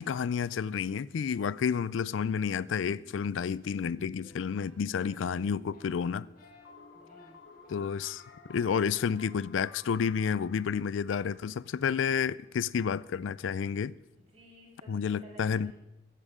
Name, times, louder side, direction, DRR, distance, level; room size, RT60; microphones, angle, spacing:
voice 1, 0.0-6.3 7.7-8.2 8.5-13.9 14.9-15.7, left 7 dB, 85° left, 0.4 m, -30 dB
sound 1, 2.7-8.7, left 3 dB, 50° left, 2.7 m, -57 dB
sound 2, 6.4-12.3, left 4 dB, 70° left, 1.0 m, -55 dB
voice 2, 6.9-7.4 14.2-15.7, right 1 dB, 35° right, 6.1 m, -53 dB
15.0 x 14.5 x 3.7 m
head